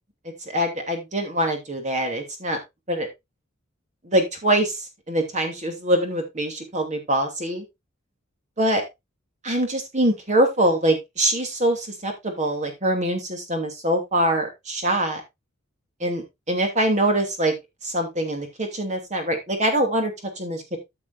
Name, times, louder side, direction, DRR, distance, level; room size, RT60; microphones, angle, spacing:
voice 1, 0.5-2.6 2.9-3.1 4.0-7.7 8.6-8.8 9.4-15.2 16.0-17.5 17.8-20.8, right 1 dB, 35° right, 4 dB, 2.7 m, -24 dB
14.0 x 6.0 x 2.5 m, 0.20 s
head